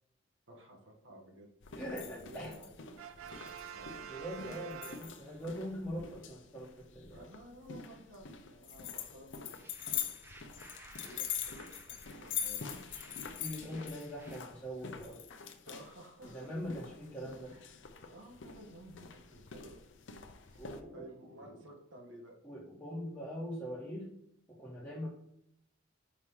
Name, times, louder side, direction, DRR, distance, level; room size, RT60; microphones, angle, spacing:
voice 1, 0.5-2.7 3.1-3.9 4.3-4.6 7.1-9.9 11.0-11.5 11.9-13.2 15.6-16.5 17.5-17.7 18.1-19.8 20.4-20.6 20.9-22.4, right 1 dB, 75° right, 0 dB, 1.5 m, -54 dB
sound 1, 1.6-20.8, left 8 dB, 70° left, 0.6 m, -44 dB
voice 2, 1.7-2.5 4.0-7.2 13.4-15.2 16.3-17.5 20.6-21.1 21.4-21.5 22.4-24.1 24.5-25.1, equal, 10° left, -8 dB, 1.2 m, -42 dB
Brass instrument, 3.0-5.6, right 8 dB, 90° right, 0.4 m, -47 dB
sound 2, 9.5-14.4, right 1 dB, 10° right, 0.6 m, -57 dB
5.6 x 3.1 x 5.4 m, 0.76 s
head